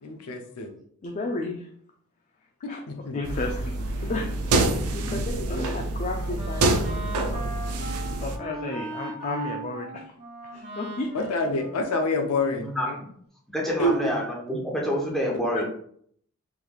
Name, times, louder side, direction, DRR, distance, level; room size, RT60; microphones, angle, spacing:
voice 1, 0.0-0.7 2.6-3.2 5.0-5.2 11.1-12.7 13.8-14.1, left 2 dB, 90° left, 5 dB, 0.5 m, -27 dB
voice 2, 1.0-1.7 2.7-2.8 3.1-7.4 8.2-10.1 10.4-11.3 12.8-13.0, left 2 dB, 35° left, 2 dB, 0.3 m, -33 dB
sound 1, 3.2-8.4, right 2 dB, 80° right, 0.4 m, -27 dB
Wind instrument woodwind instrument, 5.8-12.5, right 3 dB, 45° right, 1.1 m, -39 dB
voice 3, 13.5-15.6, equal, ahead, -3 dB, 0.8 m, -27 dB
3.7 x 3.1 x 2.3 m, 0.64 s
head